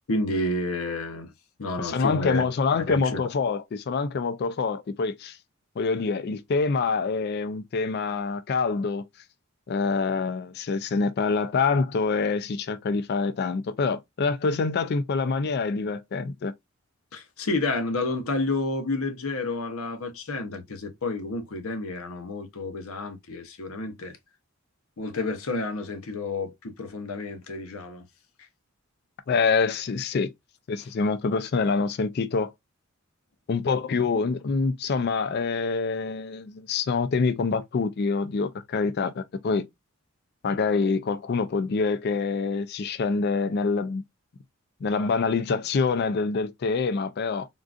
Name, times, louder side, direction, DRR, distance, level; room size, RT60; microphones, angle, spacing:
voice 1, 0.1-1.3 1.6-2.4 2.9-3.2 17.1-24.2 25.0-28.0, left 2 dB, 80° left, 0.8 m, -30 dB
voice 2, 1.8-5.4 5.8-9.0 9.7-16.5 29.3-30.3 30.7-32.5 33.5-39.7 40.4-44.0 44.8-47.5, left 4 dB, 50° left, 0.4 m, -26 dB
3.7 x 2.4 x 2.4 m
head